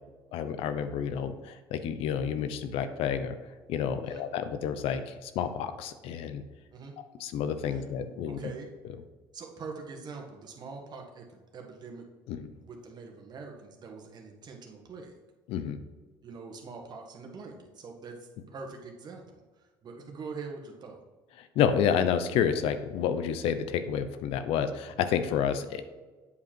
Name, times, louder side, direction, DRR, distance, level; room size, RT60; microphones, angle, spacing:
voice 1, 0.3-3.4 3.7-6.4 7.2-8.4 12.3-12.5 15.5-15.8 21.4-25.9, left 8 dB, 70° left, 10 dB, 0.7 m, -29 dB
voice 2, 8.3-8.7 9.3-12.1 12.6-15.2 16.2-21.0, right 4 dB, 45° right, 2 dB, 1.6 m, -44 dB
8.3 x 5.0 x 4.5 m, 1.3 s
supercardioid pair, 100°, 10 cm